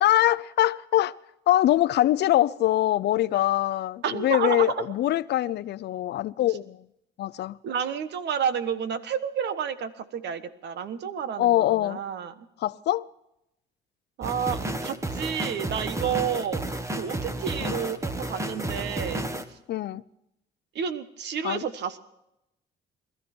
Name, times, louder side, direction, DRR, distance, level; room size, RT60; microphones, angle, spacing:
voice 1, 0.0-1.1 1.5-6.8 7.2-7.6 11.4-12.0 12.6-13.1 17.6-17.8 19.7-20.0 21.4-21.6, left 14 dB, 65° left, 0.6 m, -23 dB
voice 2, 4.0-4.9 7.6-12.5 14.2-16.6 17.0-19.2 20.7-22.0, right 8 dB, 70° right, 1.3 m, -30 dB
sound 1, 14.2-19.4, right 1 dB, 15° right, 1.4 m, -31 dB
21.0 x 13.5 x 4.5 m
cardioid pair, 100°, 18 cm